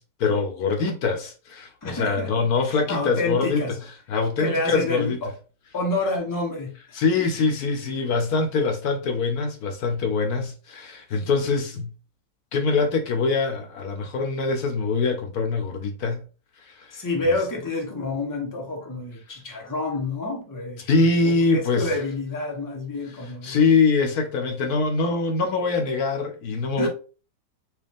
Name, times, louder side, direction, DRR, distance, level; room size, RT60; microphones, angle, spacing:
voice 1, 0.0-3.7 4.1-5.2 6.9-11.9 12.5-16.2 16.7-17.0 20.9-21.9 23.4-26.9, left 4 dB, 65° left, 1.1 m, -23 dB
voice 2, 1.8-3.8 4.4-5.3 5.7-7.0 16.9-23.6 26.8-26.9, left 2 dB, 25° left, 0.4 m, -28 dB
4.6 x 2.3 x 3.4 m
omnidirectional pair, 1.9 m